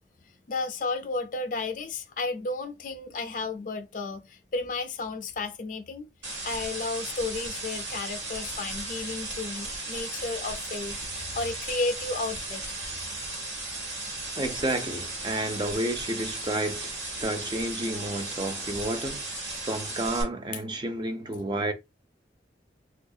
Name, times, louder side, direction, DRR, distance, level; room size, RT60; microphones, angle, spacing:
voice 1, 0.5-12.6, left 3 dB, 45° left, 0.4 m, -33 dB
sound 1, 6.2-20.2, right 2 dB, 85° right, 1.4 m, -36 dB
voice 2, 14.4-19.3 19.6-21.7, right 1 dB, 25° right, 0.4 m, -31 dB
3.8 x 2.3 x 2.6 m
head